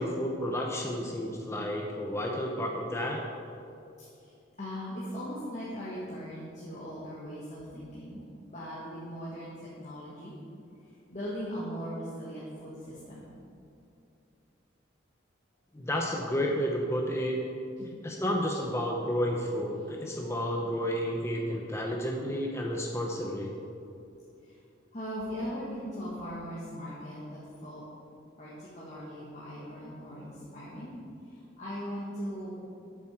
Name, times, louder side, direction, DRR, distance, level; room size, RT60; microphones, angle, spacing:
voice 1, 0.0-3.2 15.7-17.4 18.0-23.5, equal, 15° left, 0 dB, 0.8 m, -31 dB
voice 2, 4.2-10.3 11.1-13.3 17.8-17.9 24.4-24.6 24.9-27.8 28.4-30.9 31.2-32.6, equal, 40° left, -8 dB, 1.8 m, -39 dB
12.5 x 7.3 x 4.5 m, 2.5 s
head